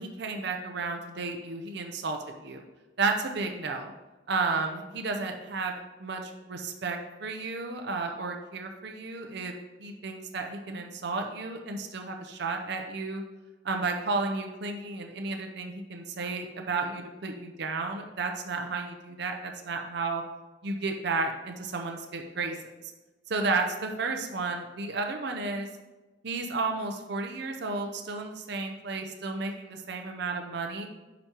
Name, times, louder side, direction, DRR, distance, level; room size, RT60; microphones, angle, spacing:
voice 1, 0.0-2.6 3.0-3.9 4.3-9.5 9.8-13.2 13.6-20.2 20.6-22.7 23.3-25.7 26.2-30.9, right 3 dB, 60° right, 4 dB, 0.6 m, -32 dB
9.0 x 5.2 x 2.9 m, 1.1 s
head